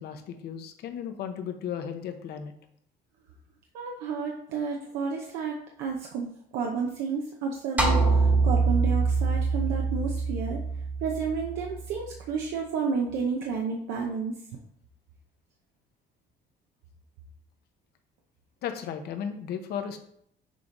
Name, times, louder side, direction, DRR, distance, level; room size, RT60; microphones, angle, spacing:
voice 1, 0.0-2.5 18.6-20.0, left 8 dB, 70° left, 7 dB, 0.9 m, -35 dB
voice 2, 3.7-10.6 11.0-14.3, right 5 dB, 90° right, 0 dB, 0.7 m, -31 dB
sound 1, 7.8-12.2, right 4 dB, 10° right, 1.1 m, -25 dB
6.7 x 3.7 x 3.9 m, 0.69 s
cardioid pair, 110°, 17 cm